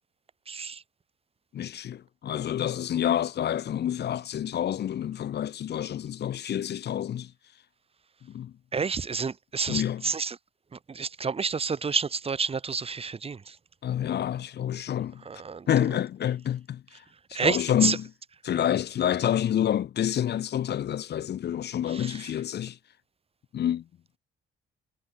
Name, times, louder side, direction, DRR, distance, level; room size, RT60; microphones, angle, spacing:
voice 1, 0.5-0.8 8.7-10.4 10.9-13.6 15.3-15.7 17.3-18.0 21.9-22.2, right 5 dB, 30° right, 1.1 m, -29 dB
voice 2, 1.5-7.3 8.2-8.5 9.7-10.0 13.8-15.2 15.7-17.0 17.3-18.1 18.4-22.8 23.5-23.9, left 10 dB, 60° left, 0.9 m, -28 dB
cardioid pair, 90°, 20 cm